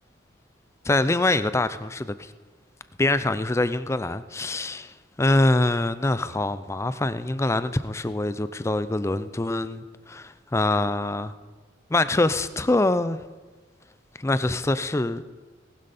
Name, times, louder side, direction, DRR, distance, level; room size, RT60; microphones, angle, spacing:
voice 1, 0.8-2.3 3.0-11.3 11.9-13.2 14.2-15.2, left 2 dB, 15° left, 13 dB, 0.4 m, -24 dB
18.5 x 12.0 x 4.2 m, 1.3 s
head